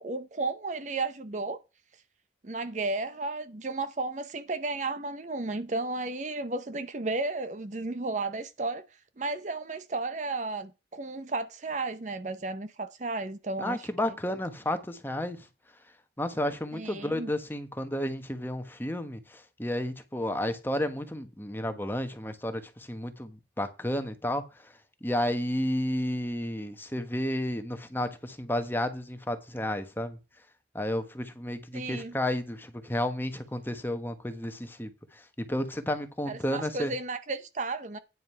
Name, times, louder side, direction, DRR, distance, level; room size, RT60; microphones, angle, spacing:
voice 1, 0.0-1.6 2.4-8.8 9.2-14.1 16.7-17.3 31.7-32.1 36.3-38.0, right 3 dB, 40° right, 0.7 m, -33 dB
voice 2, 13.6-15.5 16.2-24.4 25.0-30.2 30.7-36.9, left 1 dB, 10° left, 1.2 m, -32 dB
9.6 x 5.2 x 5.5 m
head